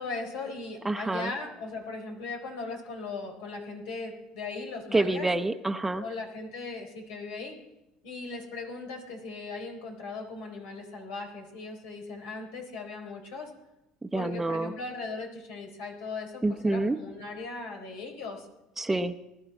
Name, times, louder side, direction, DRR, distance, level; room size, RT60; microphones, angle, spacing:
voice 1, 0.0-5.3 6.0-7.6 8.0-13.5 14.1-18.5, left 3 dB, 85° left, 2 dB, 3.9 m, -38 dB
voice 2, 0.8-1.3 4.9-6.0 14.0-14.7 16.4-17.0 18.8-19.1, right 2 dB, 10° right, 8 dB, 0.8 m, -27 dB
21.0 x 12.0 x 4.4 m, 0.91 s
supercardioid pair, 95°, 2 cm